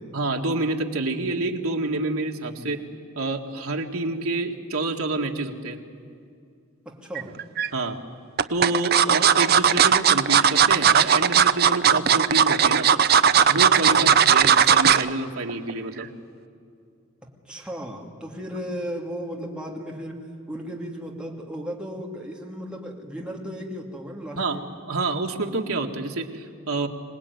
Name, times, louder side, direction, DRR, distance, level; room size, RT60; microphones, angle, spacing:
voice 1, 0.1-2.8 3.2-5.8 7.7-8.0 8.5-12.9 13.5-16.1 24.4-24.6 24.9-26.9, right 2 dB, 85° right, 2 dB, 2.0 m, -28 dB
voice 2, 6.8-7.4 11.8-12.1 13.9-14.2 17.2-20.2 20.5-24.7, equal, 5° right, -1 dB, 2.6 m, -35 dB
sound 1, 7.1-7.7 8.4-15.1 15.5-15.7 16.0-16.1, right 7 dB, 45° right, 0.6 m, -17 dB
25.5 x 19.0 x 9.5 m, 2.3 s
head